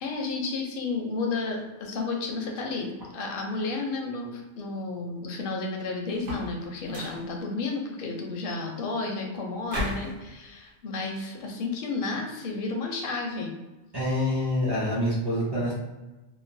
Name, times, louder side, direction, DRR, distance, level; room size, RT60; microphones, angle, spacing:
voice 1, 0.0-13.5, left 3 dB, 60° left, 1 dB, 0.6 m, -32 dB
sound 1, 6.1-6.6 6.9-7.3 9.7-10.2, equal, 80° right, 1.2 m, -33 dB
voice 2, 13.9-15.7, left 1 dB, 35° right, -6 dB, 0.4 m, -26 dB
2.9 x 2.2 x 2.5 m, 1.1 s
omnidirectional pair, 1.3 m